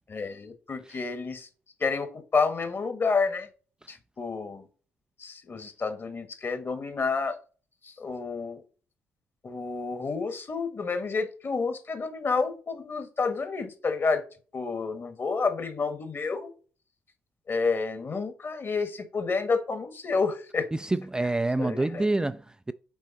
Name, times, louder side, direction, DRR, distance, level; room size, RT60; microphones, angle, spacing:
voice 1, 0.1-1.5 1.8-3.5 3.9-4.7 5.2-7.4 7.8-8.6 9.4-14.2 14.5-16.5 17.5-20.7 21.6-22.0, left 4 dB, 40° left, 1.5 m, -29 dB
voice 2, 20.7-22.7, right 2 dB, 15° right, 0.3 m, -27 dB
6.2 x 4.3 x 4.1 m
hypercardioid pair, 45°, 6 cm